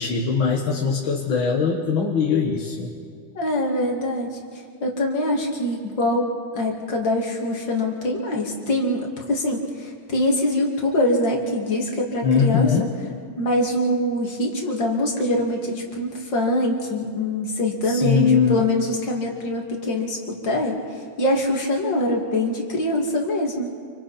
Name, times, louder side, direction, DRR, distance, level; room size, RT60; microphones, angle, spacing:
voice 1, 0.0-2.9 12.2-12.9 17.9-18.6, left 6 dB, 90° left, -1 dB, 2.3 m, -21 dB
voice 2, 3.3-4.4 4.8-12.7 13.4-20.8 21.2-23.7, left 1 dB, 65° left, -1 dB, 3.3 m, -24 dB
29.0 x 24.5 x 4.3 m, 2.1 s
omnidirectional pair, 2.1 m